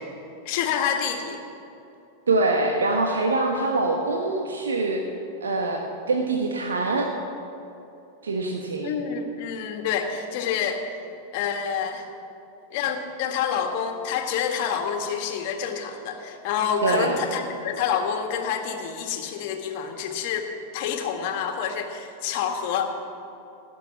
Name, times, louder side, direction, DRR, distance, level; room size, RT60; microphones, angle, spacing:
voice 1, 0.5-1.4 8.8-10.9 11.3-12.1 12.7-20.5 20.7-23.0, left 7 dB, 45° left, 4 dB, 1.8 m, -27 dB
voice 2, 2.3-5.0 5.4-5.8 6.1-7.1 8.2-8.9 16.8-17.1, right 3 dB, 70° right, 2 dB, 1.3 m, -24 dB
18.0 x 6.8 x 9.7 m, 2.9 s
figure-of-eight pair, 90°, 0 cm